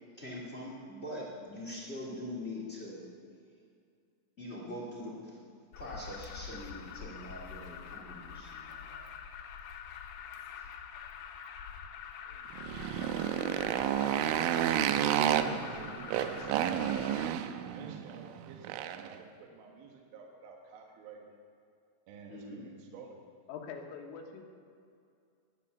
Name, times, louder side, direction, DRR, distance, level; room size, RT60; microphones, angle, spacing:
voice 1, 0.2-3.1 4.4-5.4 5.7-9.0 10.5-10.6 22.3-22.7, left 1 dB, 45° left, -3 dB, 0.8 m, -43 dB
Alarm, 5.7-17.3, left 7 dB, 75° left, 2.8 m, -45 dB
voice 2, 12.2-13.0 13.5-17.3 17.6-21.4 22.1-23.2, right 5 dB, 70° right, 0 dB, 2.5 m, -51 dB
Motorcycle, 12.5-19.2, right 10 dB, 90° right, 3.1 m, -31 dB
voice 3, 23.5-24.4, left 6 dB, 90° left, 1 dB, 4.0 m, -44 dB
21.5 x 8.5 x 6.9 m, 2.4 s
omnidirectional pair, 5.6 m